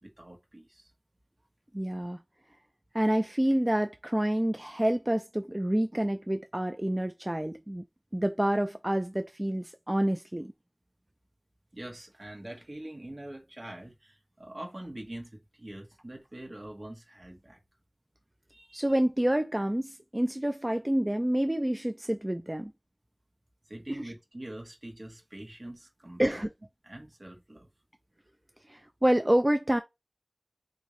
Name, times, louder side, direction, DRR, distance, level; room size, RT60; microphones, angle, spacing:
voice 1, 0.0-0.9 11.7-17.6 18.5-18.9 23.6-26.4 26.8-27.7, right 1 dB, 65° right, 1.2 m, -44 dB
voice 2, 1.7-2.2 2.9-7.8 8.1-10.5 18.7-22.7 23.9-24.0 26.2-26.5 28.7-29.8, right 1 dB, 30° right, 0.4 m, -28 dB
3.7 x 2.7 x 3.1 m
wide cardioid pair, 40°, 0 cm